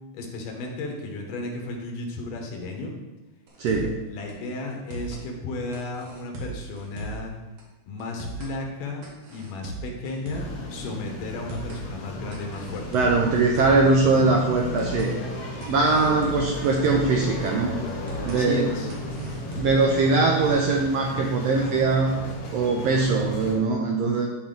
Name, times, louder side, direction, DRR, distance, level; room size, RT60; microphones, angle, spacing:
voice 1, 0.1-2.9 3.8-7.3 7.9-12.9 18.4-18.9, left 2 dB, 90° left, 1 dB, 2.8 m, -34 dB
sound 1, 3.5-4.0 4.3-4.4 4.7-5.2 5.7-7.3 7.6-7.7 8.0-8.5 9.0-10.6 10.9-11.0 11.3-11.8 12.3-13.9 14.2-14.3 14.6-15.1 15.6-17.2 17.5-17.6 17.9-18.4 18.9-19.9, right 3 dB, 60° right, 2.4 m, -37 dB
voice 2, 3.6-3.9 12.9-15.1 15.7-17.7 18.3-18.7 19.6-22.2 22.5-24.3, right 3 dB, 80° right, 1 dB, 1.4 m, -21 dB
sound 2, 10.3-23.6, left 1 dB, 65° left, 2.5 m, -34 dB
11.5 x 4.4 x 3.8 m, 1.1 s
omnidirectional pair, 3.6 m